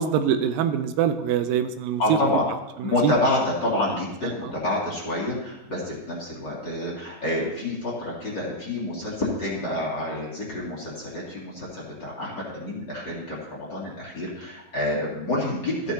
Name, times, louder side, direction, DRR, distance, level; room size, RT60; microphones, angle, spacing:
voice 1, 0.0-2.0 3.0-3.1, right 8 dB, 85° right, 9 dB, 2.3 m, -24 dB
voice 2, 2.0-2.5 2.8-15.9, left 1 dB, 35° left, -6 dB, 2.6 m, -28 dB
14.0 x 9.3 x 2.8 m, 0.98 s
omnidirectional pair, 4.1 m